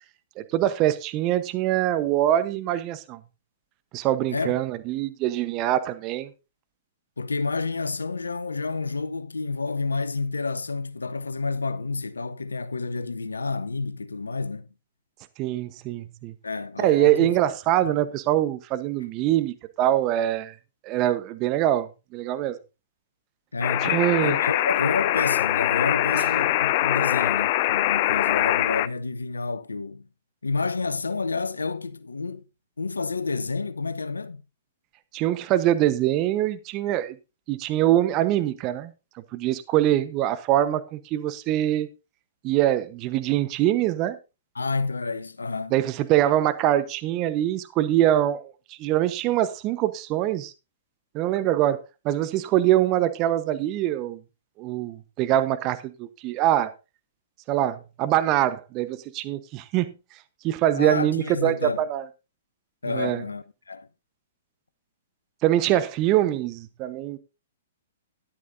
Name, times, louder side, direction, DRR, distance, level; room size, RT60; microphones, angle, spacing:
voice 1, 0.4-3.2 3.9-6.3 15.4-16.3 16.8-20.5 20.8-22.6 23.8-24.4 26.2-26.3 35.1-37.2 37.5-38.9 39.3-41.9 42.4-44.2 45.7-48.4 48.7-50.5 51.1-54.2 54.6-56.7 57.5-59.9 60.4-62.0 62.9-63.2 65.4-67.2, right 13 dB, 35° right, 0.9 m, -24 dB
voice 2, 7.2-14.7 16.4-17.4 17.8-18.0 23.5-30.1 30.4-32.4 32.8-34.4 44.5-45.8 60.7-61.8 62.8-63.9, left 4 dB, 80° left, 0.7 m, -29 dB
sound 1, 23.6-28.9, left 16 dB, 45° left, 0.4 m, -23 dB
13.0 x 11.0 x 2.6 m
figure-of-eight pair, 115°, 0 cm